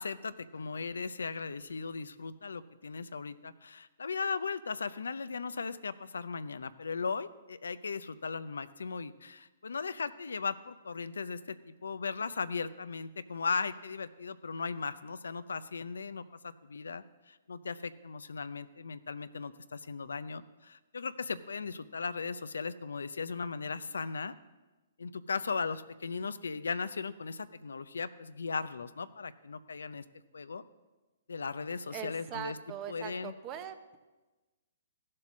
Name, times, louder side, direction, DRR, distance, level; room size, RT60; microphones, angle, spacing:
voice 1, 0.0-24.3 25.0-30.0 30.3-30.6 31.3-32.6 32.9-33.3, left 5 dB, 85° left, 14 dB, 0.5 m, -37 dB
voice 2, 31.9-34.0, right 9 dB, 30° right, 10 dB, 0.9 m, -41 dB
15.0 x 7.6 x 6.1 m, 1.2 s
hypercardioid pair, 135°, 0 cm